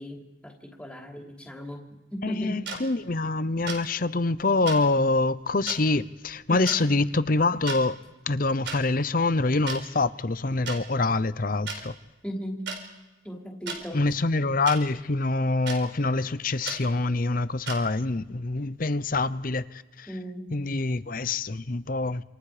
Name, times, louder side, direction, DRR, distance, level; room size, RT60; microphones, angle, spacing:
voice 1, 0.0-1.8 2.1-2.6 6.5-6.7 12.2-12.7 13.2-14.0 20.1-20.5, equal, 5° left, 3.1 m, -36 dB
voice 2, 2.2-8.0 8.3-11.9 13.9-20.1 20.5-22.2, left 3 dB, 45° left, 0.7 m, -25 dB
sound 1, 2.7-2.8 3.7-3.8 4.7-4.8 5.7-5.8 6.7-6.8 7.5-7.8 8.7-8.8 9.7-9.8 10.7-10.8 11.7-11.8 12.7-12.8 13.7-13.8 14.7-14.8 15.7-15.8 16.7-16.8 17.7-17.8, right 4 dB, 60° right, 4.6 m, -33 dB
27.5 x 27.5 x 5.0 m
head